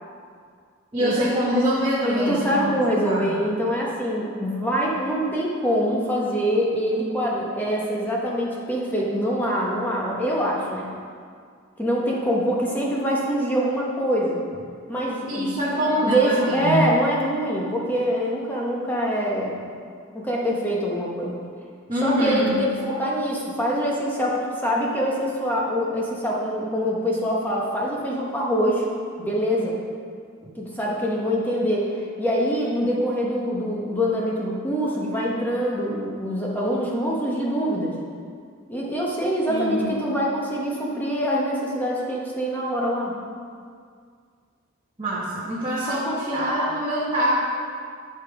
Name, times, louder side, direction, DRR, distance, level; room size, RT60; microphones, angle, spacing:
voice 1, 0.9-2.7 3.0-3.3 15.3-16.9 21.9-22.5 39.5-39.9 45.0-47.3, equal, 25° right, -10 dB, 1.5 m, -24 dB
voice 2, 2.0-10.9 11.8-14.4 14.9-19.6 20.1-21.3 22.0-28.8 29.2-29.8 30.5-31.9 32.2-37.9 38.7-43.1, equal, 10° left, -4 dB, 1.3 m, -24 dB
10.0 x 5.4 x 5.0 m, 2.1 s
head